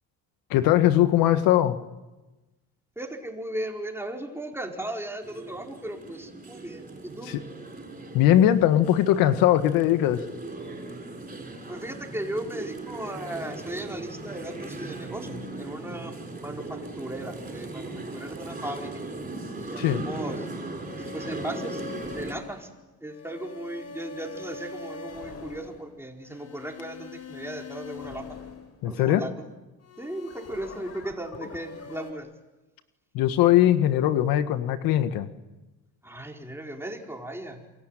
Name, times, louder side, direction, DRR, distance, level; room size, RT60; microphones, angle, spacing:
voice 1, 0.5-1.8 7.2-7.4 8.1-10.2 19.8-20.0 28.8-29.2 33.1-35.3, left 12 dB, 80° left, 11 dB, 1.7 m, -20 dB
voice 2, 3.0-7.4 11.7-19.0 19.6-20.5 21.0-21.8 22.1-22.7 23.0-28.3 28.8-29.3 30.0-32.3 36.0-37.6, right 1 dB, 5° right, 2 dB, 4.8 m, -37 dB
sound 1, 5.2-22.3, right 2 dB, 25° right, 6.7 m, -38 dB
sound 2, 20.7-29.2 29.8-32.1, left 5 dB, 45° left, 4.8 m, -43 dB
28.5 x 22.5 x 9.2 m, 1.1 s
cardioid pair, 95°, 34 cm